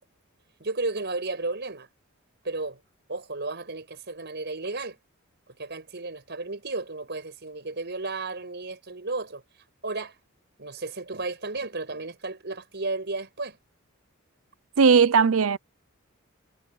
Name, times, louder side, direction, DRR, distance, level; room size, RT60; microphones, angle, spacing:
voice 1, 0.6-1.9 2.4-2.8 3.1-5.0 5.6-9.4 9.8-10.2 10.6-13.6, right 3 dB, 55° right, 5.6 m, -33 dB
voice 2, 14.8-15.6, right 5 dB, 75° right, 0.6 m, -18 dB
head